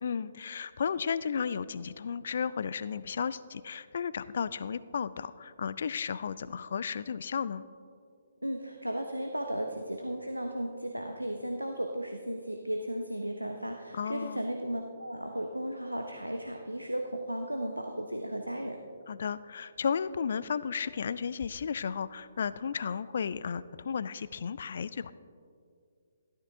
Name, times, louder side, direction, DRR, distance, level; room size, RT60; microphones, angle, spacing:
voice 1, 0.0-7.6 13.9-14.4 19.1-25.1, left 6 dB, 50° left, 17 dB, 0.3 m, -34 dB
voice 2, 8.4-18.8, right 1 dB, 85° right, 4 dB, 0.7 m, -35 dB
14.0 x 12.5 x 2.7 m, 2.3 s
figure-of-eight pair, 135°, 0 cm